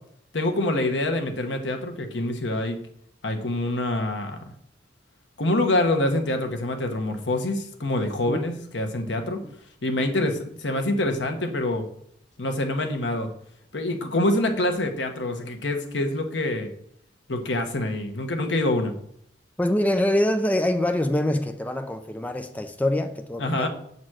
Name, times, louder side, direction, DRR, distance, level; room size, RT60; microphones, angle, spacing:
voice 1, 0.3-2.8 3.2-4.4 5.4-9.4 9.8-11.9 12.4-13.3 13.7-16.7 17.3-18.9 23.4-23.7, left 1 dB, 80° left, 1.2 m, -26 dB
voice 2, 19.6-23.7, left 1 dB, 10° left, 0.5 m, -24 dB
7.6 x 4.1 x 6.2 m
head